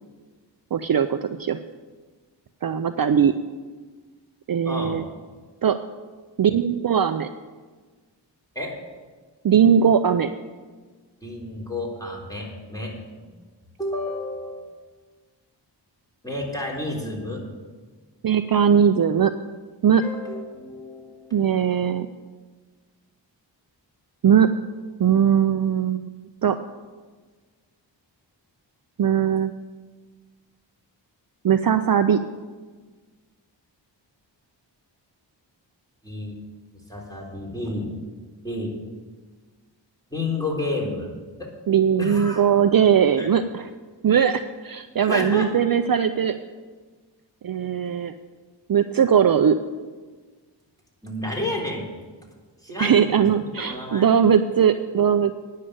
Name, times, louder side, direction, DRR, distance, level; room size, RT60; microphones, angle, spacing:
voice 1, 0.7-1.6 2.6-3.3 4.5-5.0 5.6-5.8 6.4-7.3 9.4-10.3 18.2-19.3 19.8-20.0 21.3-22.1 24.2-24.5 25.0-26.0 26.4-26.6 29.0-29.5 31.4-32.2 41.7-43.7 44.0-46.4 47.4-48.1 48.7-49.6 52.8-55.4, right 8 dB, 50° right, 10 dB, 0.6 m, -19 dB
voice 2, 4.6-5.0 8.6-8.7 11.2-13.3 13.8-14.6 16.2-17.4 20.0-21.4 36.0-36.4 36.9-37.9 38.4-38.7 40.1-41.1 41.4-41.5 42.0-42.4 43.2-43.3 45.1-45.5 51.0-51.9 52.6-53.3 53.7-54.1, left 2 dB, 10° left, -2 dB, 3.8 m, -30 dB
9.9 x 6.6 x 8.8 m, 1.4 s
cardioid pair, 50°, 45 cm